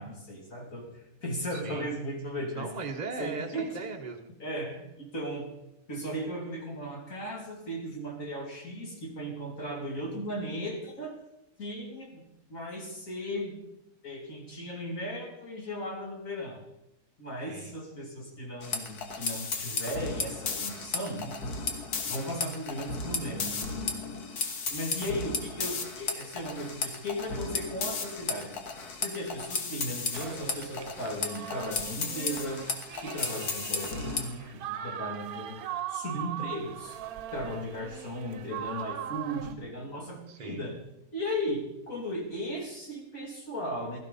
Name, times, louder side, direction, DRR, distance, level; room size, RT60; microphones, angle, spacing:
voice 1, 0.0-2.7 3.2-3.7 4.4-5.5 5.9-11.1 11.6-12.2 12.5-13.5 14.0-16.6 17.2-21.4 22.0-24.2 24.7-28.6 29.0-32.6 33.0-35.6 35.9-37.0 37.3-40.8 41.1-44.0, equal, 60° left, 0 dB, 3.2 m, -36 dB
voice 2, 1.5-1.9 2.6-4.3 17.5-17.7 40.3-40.6, right 4 dB, 35° right, 2 dB, 0.9 m, -38 dB
sound 1, 18.6-34.3, left 4 dB, 85° left, 1.9 m, -34 dB
sound 2, 30.1-39.5, right 11 dB, 75° right, 1.2 m, -40 dB
16.5 x 13.0 x 4.1 m, 0.88 s
omnidirectional pair, 1.6 m